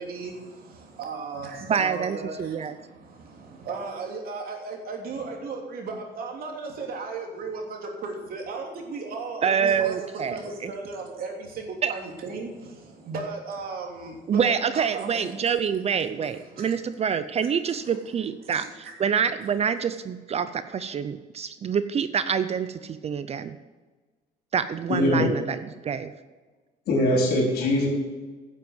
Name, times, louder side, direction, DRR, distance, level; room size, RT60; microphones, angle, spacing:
voice 1, 0.0-15.3 16.1-16.7 17.9-18.0 18.4-18.9, right 4 dB, 60° right, 1 dB, 3.1 m, -36 dB
voice 2, 1.7-2.8 9.4-10.7 11.8-11.9 14.3-23.6 24.5-26.1, right 7 dB, 40° right, 12 dB, 0.6 m, -26 dB
voice 3, 24.9-25.3 26.9-27.9, left 1 dB, 70° left, 0 dB, 4.2 m, -22 dB
11.0 x 7.5 x 7.9 m, 1.3 s
cardioid pair, 110°, 17 cm